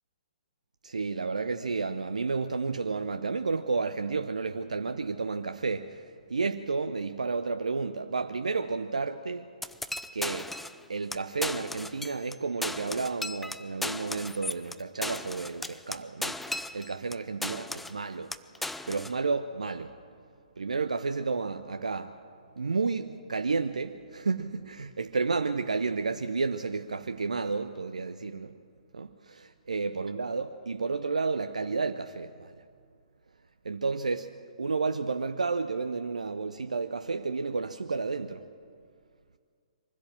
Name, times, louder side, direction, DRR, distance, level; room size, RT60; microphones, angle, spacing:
voice 1, 0.8-6.0 6.3-9.5 10.1-10.5 10.9-18.3 18.9-19.9 20.6-22.1 22.6-28.5 28.9-32.5 33.6-34.3 34.6-38.4, right 4 dB, 70° right, 0.7 m, -31 dB
sound 1, 9.6-10.8 11.1-11.2 11.4-12.3 12.6-17.1 17.4-18.0 18.3-19.1, left 2 dB, 5° left, 0.4 m, -36 dB
23.5 x 15.5 x 7.7 m
figure-of-eight pair, 125°, 4 cm